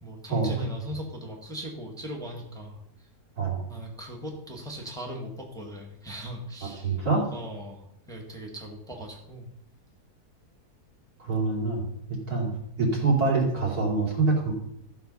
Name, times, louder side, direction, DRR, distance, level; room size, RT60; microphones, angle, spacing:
voice 1, 0.0-3.1 3.7-7.0 7.3-9.5 12.4-12.5, equal, ahead, -1 dB, 1.6 m, -39 dB
voice 2, 6.6-7.3 11.2-14.5, right 3 dB, 75° right, -2 dB, 3.3 m, -26 dB
14.0 x 6.0 x 5.4 m, 0.80 s
omnidirectional pair, 1.7 m